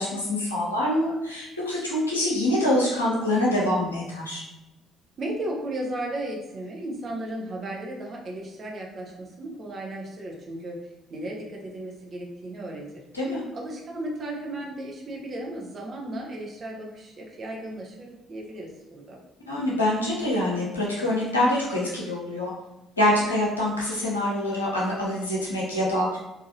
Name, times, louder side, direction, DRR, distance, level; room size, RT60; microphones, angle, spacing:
voice 1, 0.0-4.4 13.1-13.4 19.5-22.5 23.0-26.2, left 1 dB, 85° left, -5 dB, 0.7 m, -25 dB
voice 2, 5.2-13.0 13.5-19.2, right 1 dB, 40° right, -1 dB, 0.8 m, -35 dB
4.1 x 2.5 x 2.7 m, 0.99 s
figure-of-eight pair, 50°, 0 cm